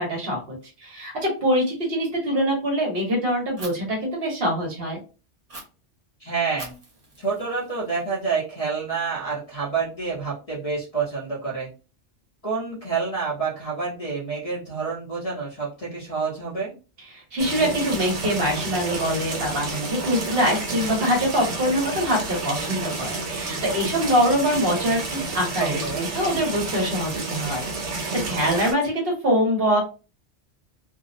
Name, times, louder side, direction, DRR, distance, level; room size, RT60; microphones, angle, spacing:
voice 1, 0.0-5.0 17.1-29.8, equal, 60° right, -1 dB, 1.2 m, -24 dB
Fire, 3.6-3.7 5.5-5.6 6.6-8.5, right 2 dB, 35° right, 0.8 m, -43 dB
voice 2, 6.2-6.7 7.2-11.7 12.4-16.7 25.6-26.1, right 5 dB, 40° left, -3 dB, 0.7 m, -28 dB
sound 1, 17.4-28.7, right 3 dB, 80° right, 1.2 m, -30 dB
2.6 x 2.0 x 2.5 m, 0.32 s
omnidirectional pair, 1.2 m